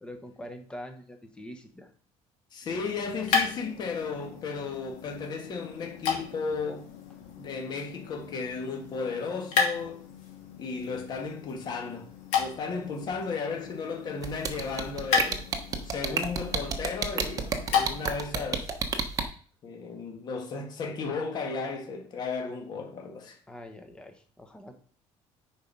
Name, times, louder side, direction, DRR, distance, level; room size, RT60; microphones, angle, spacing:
voice 1, 0.0-1.9 23.5-24.7, equal, 10° left, 1.2 m, -44 dB
voice 2, 2.5-6.9 7.4-10.0 10.6-12.1 12.3-15.4 15.8-18.7 19.6-23.4, left 4 dB, 35° left, 1.9 m, -34 dB
sound 1, 2.6-18.2, left 6 dB, 70° left, 2.8 m, -34 dB
sound 2, 14.2-19.2, right 5 dB, 30° right, 1.0 m, -29 dB
9.3 x 4.7 x 5.5 m
cardioid pair, 165°, 12 cm